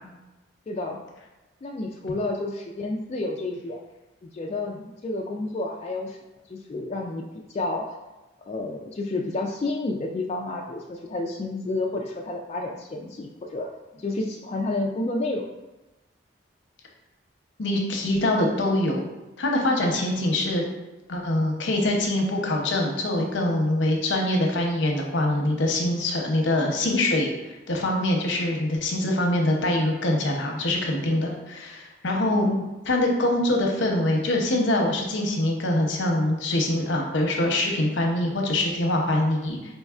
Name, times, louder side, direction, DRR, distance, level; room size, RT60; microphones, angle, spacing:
voice 1, 0.7-1.0 1.6-3.8 4.2-6.2 6.5-7.9 8.5-15.4 20.1-20.5 32.2-32.8, left 2 dB, 35° left, 0 dB, 0.3 m, -30 dB
voice 2, 17.6-19.0 19.4-20.6 21.1-32.5 32.9-39.6, left 1 dB, 75° left, 1 dB, 0.7 m, -24 dB
5.2 x 3.1 x 2.4 m, 1.1 s
head